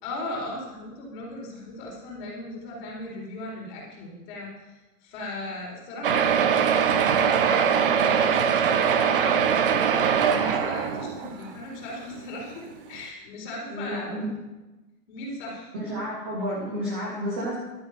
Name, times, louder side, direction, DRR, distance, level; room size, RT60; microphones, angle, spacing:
voice 1, 0.0-6.3 6.6-14.2 15.1-15.7, left 2 dB, 30° left, -2 dB, 4.3 m, -37 dB
sound 1, 6.0-11.5 12.1-12.2 12.5-12.6 12.9-13.0, right 7 dB, 35° right, 0.9 m, -22 dB
voice 2, 13.7-14.3 15.7-17.6, equal, 10° right, -3 dB, 0.5 m, -31 dB
12.5 x 10.5 x 5.8 m, 1.1 s
hypercardioid pair, 170°, 48 cm